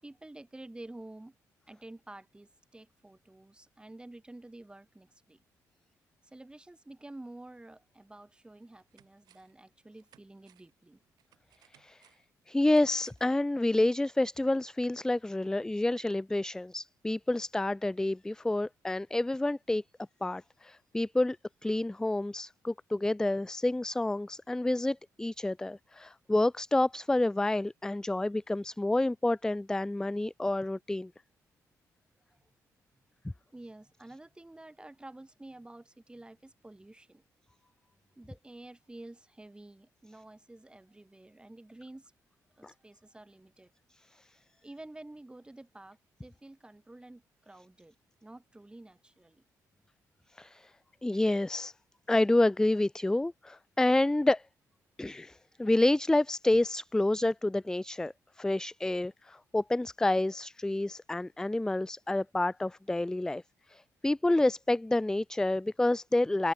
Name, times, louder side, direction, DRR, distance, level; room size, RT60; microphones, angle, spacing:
voice 1, 0.0-1.3 1.7-5.4 6.2-11.0 32.3-32.4 33.5-37.2 38.2-42.1 42.6-43.7 44.6-48.0 48.2-49.4, right 2 dB, 15° right, 5.7 m, -50 dB
sound 1, 8.0-8.1 8.5-9.6 10.0-13.4 13.7-13.8, right 12 dB, 80° right, 6.6 m, -65 dB
voice 2, 12.5-19.8 20.2-21.4 21.6-31.1 42.6-42.7 50.4-50.7 51.0-51.7 52.1-54.4 55.0-63.4 63.7-66.5, left 2 dB, 10° left, 0.4 m, -29 dB
cardioid pair, 75°, 7 cm